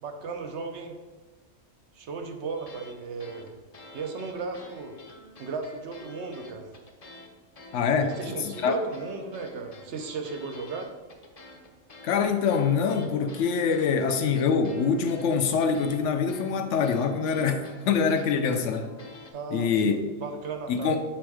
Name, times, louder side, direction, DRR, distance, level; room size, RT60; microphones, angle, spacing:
voice 1, 0.0-1.0 1.9-3.5 3.9-5.0 5.4-6.7 8.0-10.9 19.3-21.0, right 4 dB, 70° right, 1.0 m, -35 dB
sound 1, 2.6-2.9 3.2-7.3 7.6-19.3, left 2 dB, 40° left, 0.7 m, -48 dB
voice 2, 7.7-8.8 12.0-18.9 19.5-19.9 20.7-21.0, left 6 dB, 75° left, 1.0 m, -25 dB
7.2 x 3.4 x 4.8 m
omnidirectional pair, 1.2 m